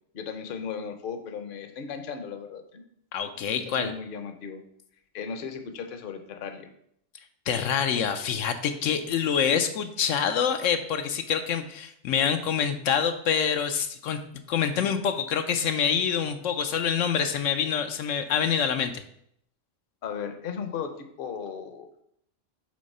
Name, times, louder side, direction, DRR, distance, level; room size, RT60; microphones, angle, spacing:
voice 1, 0.1-2.8 3.5-4.6 5.1-6.7 20.0-21.9, left 6 dB, 50° left, 8 dB, 0.8 m, -36 dB
voice 2, 3.1-3.9 7.5-14.2 14.5-19.0, left 7 dB, 80° left, 7 dB, 1.0 m, -26 dB
6.4 x 3.9 x 5.4 m, 0.70 s
omnidirectional pair, 1.3 m